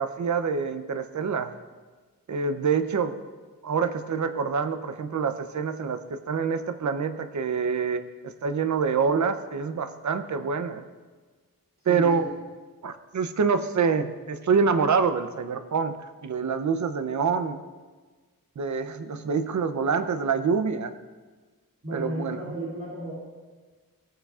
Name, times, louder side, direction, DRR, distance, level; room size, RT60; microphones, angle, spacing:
voice 1, 0.0-1.5 2.3-3.1 3.6-8.0 8.4-10.8 11.9-12.3 12.8-16.0 16.2-17.6 18.6-20.9 21.9-22.4, right 5 dB, 55° right, 9 dB, 0.7 m, -26 dB
voice 2, 11.8-12.3 21.8-23.1, right 1 dB, 40° right, -9 dB, 2.7 m, -34 dB
17.0 x 8.9 x 2.4 m, 1.4 s
wide cardioid pair, 140°, 35 cm